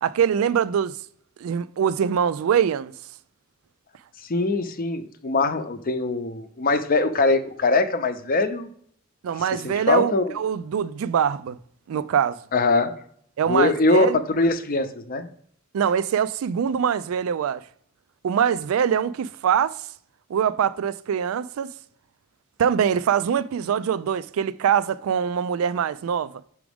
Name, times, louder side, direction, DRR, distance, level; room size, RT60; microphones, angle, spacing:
voice 1, 0.0-1.0 1.4-2.9 9.2-11.6 11.9-12.4 13.4-14.2 15.7-17.6 18.2-19.9 20.3-21.7 22.6-26.3, right 8 dB, 85° right, 0.3 m, -23 dB
voice 2, 4.2-8.7 9.6-10.3 12.5-12.9 13.5-15.3, left 3 dB, 45° left, 0.6 m, -22 dB
6.0 x 4.8 x 3.5 m
head